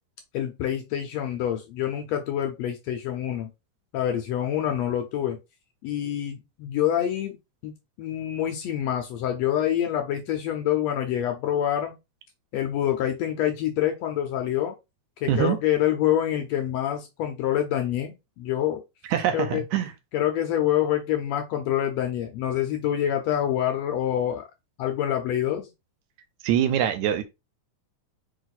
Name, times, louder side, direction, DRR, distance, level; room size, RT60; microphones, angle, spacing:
voice 1, 0.3-3.5 3.9-5.4 5.8-7.4 7.6-7.7 8.0-12.0 12.5-14.7 15.2-18.8 19.3-19.6 20.1-24.5 24.8-25.7, left 11 dB, 75° left, 1.6 m, -26 dB
voice 2, 19.1-19.9 26.4-27.2, right 10 dB, 80° right, 1.9 m, -23 dB
4.7 x 2.5 x 4.1 m
omnidirectional pair, 3.5 m